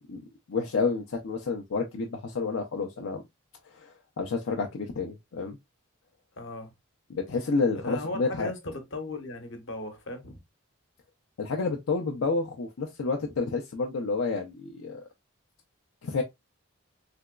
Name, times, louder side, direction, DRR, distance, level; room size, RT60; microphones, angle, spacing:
voice 1, 0.0-3.2 3.7-5.6 7.1-8.5 11.4-15.0 16.0-16.2, left 4 dB, 85° left, 0.5 m, -30 dB
voice 2, 6.4-6.7 7.8-10.4, left 2 dB, 65° left, 0.9 m, -36 dB
3.4 x 2.9 x 2.3 m
head